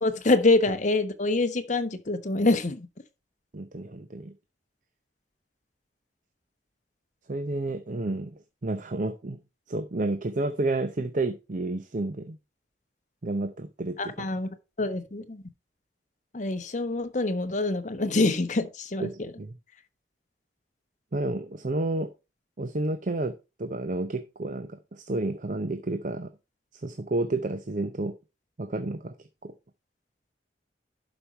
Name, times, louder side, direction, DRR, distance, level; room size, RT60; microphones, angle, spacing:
voice 1, 0.0-2.9 14.0-14.5 14.8-15.4 16.3-19.3, left 2 dB, 45° left, 1.1 m, -25 dB
voice 2, 3.5-4.3 7.3-9.4 9.7-12.4 13.2-14.1 19.0-19.5 21.1-22.1 22.6-26.3 26.7-28.1 28.6-29.1 29.4-29.5, right 2 dB, 45° right, 0.7 m, -30 dB
11.5 x 5.3 x 4.4 m
head